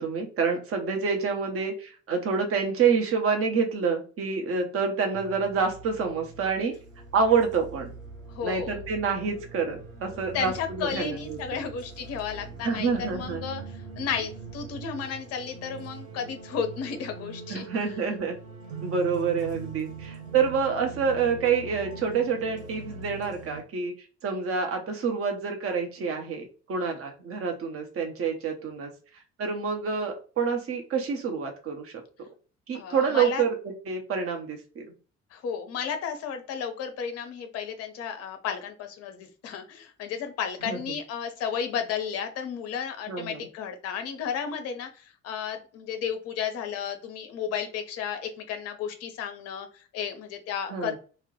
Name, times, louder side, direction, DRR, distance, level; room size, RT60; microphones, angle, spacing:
voice 1, 0.0-6.7 7.1-7.9 8.4-11.6 12.6-13.4 17.5-18.4 18.8-23.9 24.2-28.9 29.4-32.0 32.7-34.9 40.7-41.0 43.1-43.5 50.7-51.0, right 5 dB, 35° right, 4 dB, 0.7 m, -27 dB
sound 1, 5.1-23.6, right 4 dB, 85° right, 0.6 m, -42 dB
voice 2, 8.3-8.8 10.3-17.7 32.7-33.4 35.3-51.0, left 7 dB, 40° left, 6 dB, 0.5 m, -33 dB
2.2 x 2.0 x 2.8 m, 0.37 s
figure-of-eight pair, 50°, 38 cm